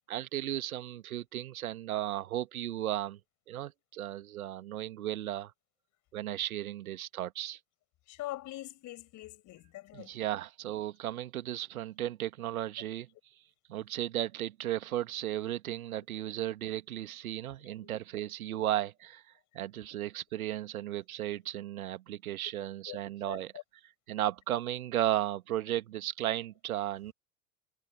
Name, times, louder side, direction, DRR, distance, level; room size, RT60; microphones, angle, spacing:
voice 1, 0.1-3.2 3.5-5.5 6.1-7.6 9.9-13.1 13.7-19.2 19.5-23.5 23.8-27.1, right 13 dB, 70° right, 1.8 m, -35 dB
voice 2, 8.1-10.1 22.9-23.0 23.3-23.4, left 16 dB, 40° left, 5.1 m, -43 dB
figure-of-eight pair, 80°, 45 cm